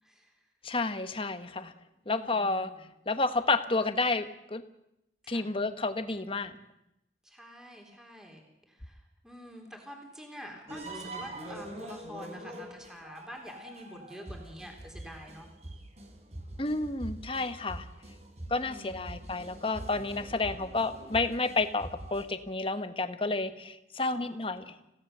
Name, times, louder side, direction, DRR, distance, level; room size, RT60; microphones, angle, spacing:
voice 1, 0.0-0.4 2.1-2.8 5.2-5.5 7.2-8.4 8.7-15.5 18.6-19.1 24.1-24.8, equal, 5° right, 1 dB, 3.4 m, -47 dB
voice 2, 0.6-1.7 2.1-2.7 3.1-4.6 5.3-6.6 16.6-17.9 18.5-24.7, left 3 dB, 30° left, 10 dB, 1.2 m, -30 dB
sound 1, 10.7-22.2, right 1 dB, 35° right, 3.6 m, -44 dB
27.0 x 16.5 x 6.7 m, 0.85 s
head